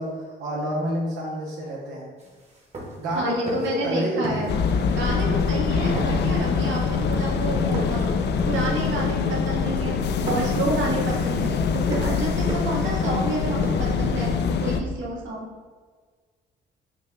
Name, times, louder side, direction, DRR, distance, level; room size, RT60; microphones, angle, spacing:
voice 1, 0.0-2.1 3.0-4.4, equal, 90° right, -6 dB, 0.9 m, -28 dB
sound 1, 2.2-2.3 2.6-3.1 3.4-3.9 4.2-4.8 5.1-5.6 6.0-8.1 8.4-9.3 9.6-10.0 10.3-14.3, right 1 dB, 35° right, 1.2 m, -35 dB
voice 2, 3.1-4.6 4.9-9.9 10.2-14.3 14.6-15.5, right 2 dB, 70° right, -3 dB, 1.2 m, -30 dB
sound 2, 4.5-14.8, left 5 dB, 60° left, 0.4 m, -24 dB
5.7 x 2.3 x 3.3 m, 1.5 s
cardioid pair, 90°, 20 cm